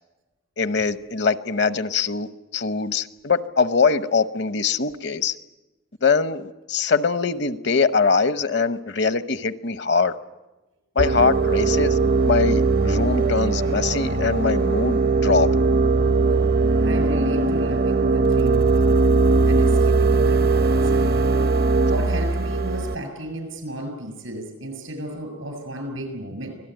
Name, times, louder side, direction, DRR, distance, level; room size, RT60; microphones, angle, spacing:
voice 1, 0.6-2.3 2.5-5.3 6.0-10.1 11.0-12.0 12.2-15.5, left 5 dB, 60° left, 12 dB, 0.9 m, -22 dB
sound 1, 11.0-23.0, right 3 dB, 50° right, 0.7 m, -20 dB
voice 2, 16.8-19.0 19.4-21.2 21.8-26.5, right 1 dB, 90° right, 6 dB, 6.8 m, -33 dB
25.0 x 17.5 x 9.0 m, 1.1 s
head